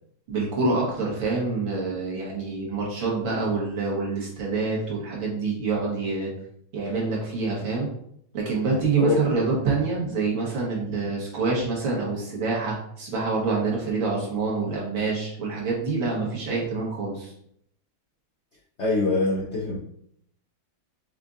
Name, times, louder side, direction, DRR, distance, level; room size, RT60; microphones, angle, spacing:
voice 1, 0.3-6.3 6.7-7.9 8.3-17.3, right 4 dB, 70° right, -4 dB, 2.2 m, -26 dB
voice 2, 18.8-19.8, left 3 dB, 85° left, -2 dB, 0.6 m, -24 dB
5.4 x 3.7 x 2.6 m, 0.69 s
omnidirectional pair, 2.2 m